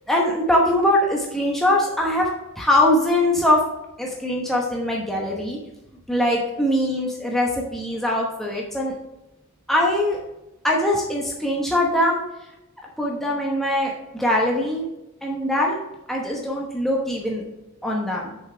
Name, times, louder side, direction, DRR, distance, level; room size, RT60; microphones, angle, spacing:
voice 1, 0.1-2.3 2.6-3.6 4.0-5.6 6.1-8.9 9.7-10.2 10.6-12.2 13.0-14.9 15.2-15.8 16.1-17.4 17.8-18.3, left 1 dB, ahead, -2 dB, 0.9 m, -22 dB
7.0 x 5.4 x 4.9 m, 0.97 s
head